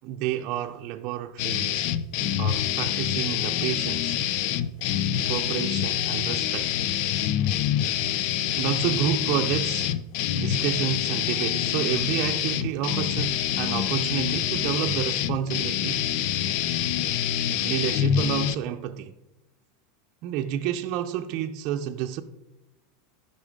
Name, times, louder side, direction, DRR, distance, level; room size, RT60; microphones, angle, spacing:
voice 1, 0.0-1.9 2.4-4.2 5.3-6.8 8.6-10.0 10.4-16.1 17.1-17.2 17.6-19.1 20.2-22.2, right 10 dB, 50° right, 0.6 m, -30 dB
sound 1, 1.4-18.6, left 10 dB, 60° left, 0.5 m, -26 dB
13.5 x 5.6 x 5.2 m
supercardioid pair, 140°, 0 cm